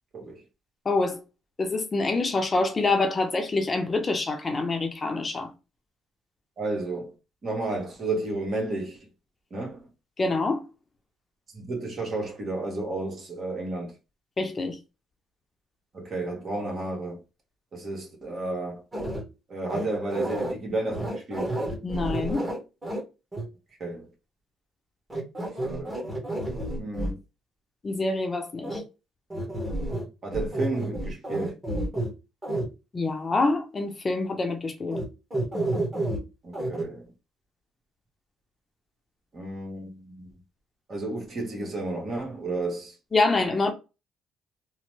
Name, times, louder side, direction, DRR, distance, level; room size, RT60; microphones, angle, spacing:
voice 1, 0.8-1.2 1.6-5.5 10.2-10.6 14.4-14.8 21.8-22.5 27.8-28.8 32.9-35.0 43.1-43.7, left 3 dB, 30° left, 0.6 m, -26 dB
voice 2, 6.6-7.1 7.4-9.0 9.5-9.8 11.5-13.9 15.9-17.2 17.7-18.8 19.5-21.6 23.8-24.1 25.6-26.0 26.8-27.2 30.2-31.6 36.4-37.0 39.3-40.3 40.9-43.0, right 2 dB, 50° right, 1.3 m, -32 dB
sound 1, 18.9-19.2 19.7-20.5 20.9-23.0 23.3-23.4 25.1-27.1 28.6-28.8 29.3-30.1 30.3-32.1 32.4-32.7 34.9-35.0 35.3-36.2 36.5-36.8, right 1 dB, 20° right, 1.3 m, -30 dB
3.0 x 2.1 x 3.2 m
cardioid pair, 90°, 0 cm